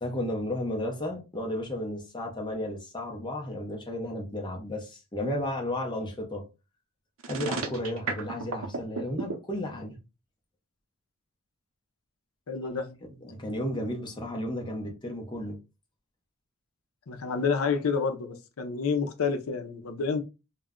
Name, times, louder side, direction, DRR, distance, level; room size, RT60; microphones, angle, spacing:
voice 1, 0.0-6.5 7.3-10.0 12.6-12.7 13.2-15.6, left 1 dB, 20° left, 0.6 m, -33 dB
sound 1, 7.2-9.3, right 4 dB, 70° right, 0.6 m, -32 dB
voice 2, 12.5-13.1 17.1-20.2, left 5 dB, 80° left, 0.5 m, -29 dB
2.3 x 2.0 x 3.6 m
head